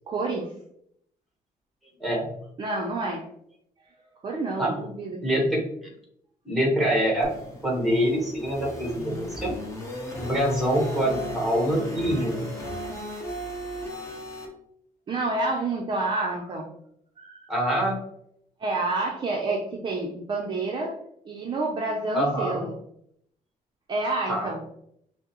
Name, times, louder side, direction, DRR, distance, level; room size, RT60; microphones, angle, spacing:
voice 1, 0.1-0.5 2.6-3.2 4.2-5.4 15.1-16.7 17.2-17.4 18.6-21.0 21.3-22.8 23.9-24.6, right 2 dB, 30° right, -1 dB, 0.5 m, -28 dB
voice 2, 5.2-5.6 6.4-7.3 7.6-9.5 10.2-12.5 17.5-18.0 22.1-22.7 24.3-24.5, equal, ahead, -1 dB, 1.1 m, -25 dB
sound 1, 7.2-14.5, equal, 20° left, 0.8 m, -36 dB
5.9 x 2.0 x 2.9 m, 0.72 s
cardioid pair, 170°, 15 cm